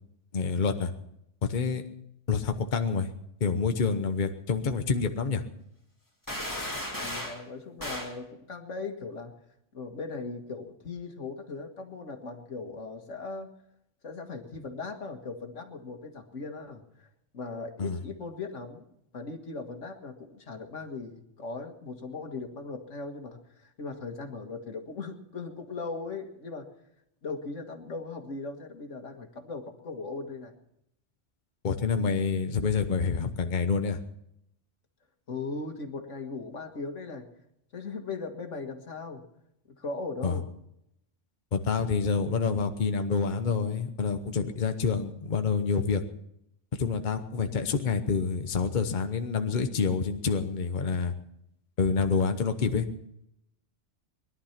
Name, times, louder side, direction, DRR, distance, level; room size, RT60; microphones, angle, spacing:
voice 1, 0.3-0.9 1.5-1.8 2.3-3.1 3.4-5.4 17.8-18.0 31.6-34.0 40.2-40.4 41.5-46.0 46.8-51.1 51.8-52.9, left 5 dB, 45° left, 7 dB, 1.1 m, -27 dB
sound 1, 6.3-7.4 7.8-8.2, left 1 dB, 15° left, 2.3 m, -35 dB
voice 2, 7.0-9.3 9.7-13.5 14.0-17.1 17.3-18.8 19.1-26.7 27.2-30.5 35.3-37.3 37.7-39.2 39.8-40.5, left 3 dB, 80° left, 4 dB, 2.1 m, -38 dB
21.0 x 11.5 x 5.9 m, 0.79 s
omnidirectional pair, 1.2 m